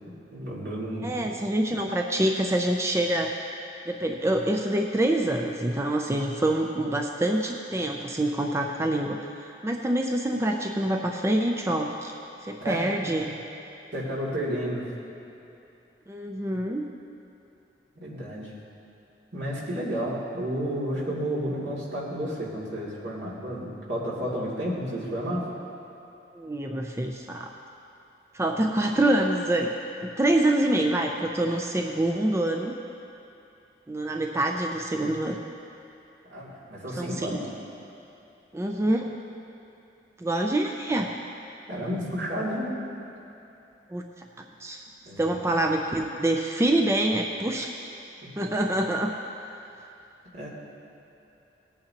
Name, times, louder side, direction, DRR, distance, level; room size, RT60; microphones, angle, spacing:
voice 1, 0.3-1.3 12.6-12.8 13.9-14.8 18.0-18.5 19.3-25.4 36.3-37.4 41.7-42.7 45.0-45.5 50.3-50.5, equal, 75° right, -7 dB, 2.6 m, -31 dB
voice 2, 1.0-3.3 3.9-12.1 12.5-13.4 16.1-16.8 26.3-27.5 28.3-29.7 30.0-32.7 33.9-35.4 37.0-37.4 38.5-39.1 40.2-41.1 43.9-44.0 44.4-44.8 45.2-47.7 48.4-49.1, right 1 dB, 15° right, 2 dB, 0.4 m, -26 dB
18.5 x 8.8 x 2.9 m, 2.8 s
head